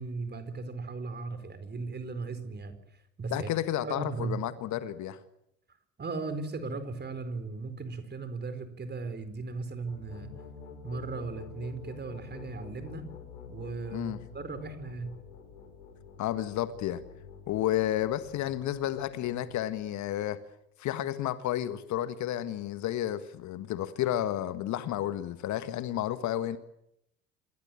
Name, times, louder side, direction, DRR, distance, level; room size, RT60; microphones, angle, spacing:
voice 1, 0.0-2.8 3.2-3.5 3.8-4.4 6.0-10.3 10.8-13.0 13.5-15.2, right 4 dB, 25° right, 4.6 m, -37 dB
voice 2, 3.3-5.2 13.9-14.2 16.2-17.0 17.5-20.4 20.8-26.6, left 12 dB, 45° left, 1.7 m, -31 dB
sound 1, 9.6-20.3, left 6 dB, 70° left, 6.1 m, -48 dB
27.0 x 22.0 x 7.3 m
figure-of-eight pair, 65°, 40 cm